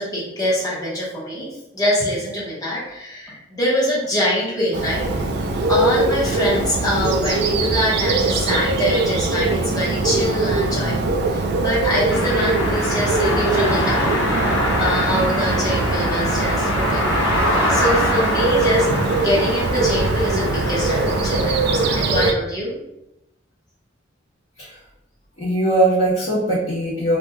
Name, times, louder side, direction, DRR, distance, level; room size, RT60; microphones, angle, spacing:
voice 1, 0.0-1.5 1.7-5.1 5.5-14.2 14.8-18.9 19.2-22.8, left 1 dB, 20° left, -7 dB, 1.0 m, -24 dB
Bird, 4.7-22.3, right 3 dB, 55° right, 0.3 m, -21 dB
sound 1, 12.1-22.0, left 1 dB, 80° left, 1.0 m, -24 dB
voice 2, 25.4-27.2, right 1 dB, 40° left, -13 dB, 1.1 m, -20 dB
3.1 x 2.6 x 2.2 m, 0.87 s
head